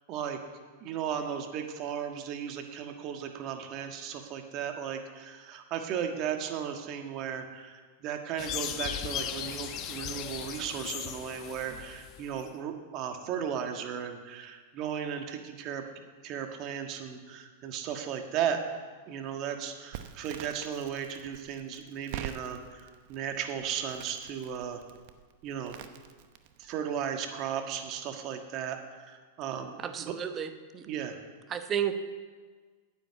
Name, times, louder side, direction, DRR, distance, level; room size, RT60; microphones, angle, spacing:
voice 1, 0.1-0.4 0.8-15.8 16.2-18.6 19.1-24.8 25.4-25.8 26.6-30.1 30.9-31.2, right 8 dB, 45° right, 5 dB, 1.5 m, -35 dB
sound 1, 8.4-12.5, left 9 dB, 40° left, 1.0 m, -37 dB
Crackle, 19.9-26.7, right 11 dB, 60° right, 0.8 m, -46 dB
voice 2, 29.8-30.9 31.5-31.9, right 9 dB, 25° right, 9 dB, 0.9 m, -32 dB
9.6 x 8.9 x 8.0 m, 1.5 s
hypercardioid pair, 120°, 0 cm